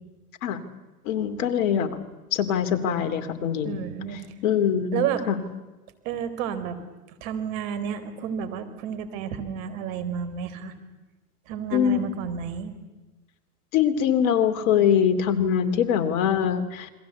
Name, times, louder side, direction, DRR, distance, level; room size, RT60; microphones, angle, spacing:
voice 1, 1.1-2.0 2.3-3.8 4.4-5.3 11.7-12.2 13.7-16.9, left 8 dB, 60° left, 9 dB, 3.0 m, -23 dB
voice 2, 3.6-4.2 4.9-5.2 6.0-6.8 7.2-10.7 11.5-12.7, right 8 dB, 55° right, 12 dB, 4.3 m, -31 dB
29.0 x 22.5 x 8.3 m, 1.1 s
hypercardioid pair, 110°, 47 cm